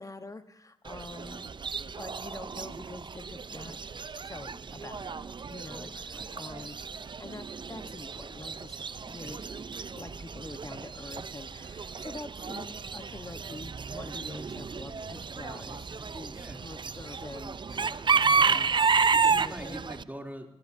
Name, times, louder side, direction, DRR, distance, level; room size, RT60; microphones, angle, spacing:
voice 1, 0.0-1.5 1.8-3.8 4.2-5.2 5.5-6.8 7.2-8.8 9.0-9.4 9.9-15.8 16.1-16.3 16.6-18.7 19.3-19.8, left 2 dB, 30° left, 9 dB, 1.0 m, -45 dB
Chicken rooster / Bird, 0.9-20.0, right 5 dB, 45° right, 0.6 m, -31 dB
voice 2, 5.7-6.7 7.7-7.9 9.0-9.4 15.5-16.6 18.1-20.6, right 1 dB, 15° right, 2 dB, 2.8 m, -46 dB
27.0 x 18.0 x 2.7 m, 0.82 s
supercardioid pair, 45°, 11 cm